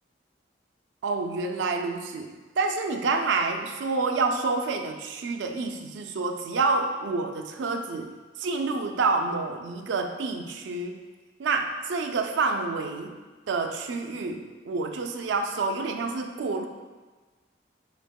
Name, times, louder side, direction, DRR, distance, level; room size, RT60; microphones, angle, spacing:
voice 1, 1.0-8.1 8.4-11.0 11.4-13.2 13.5-16.7, right 3 dB, 80° right, 5 dB, 0.4 m, -28 dB
6.3 x 2.8 x 2.2 m, 1.3 s
head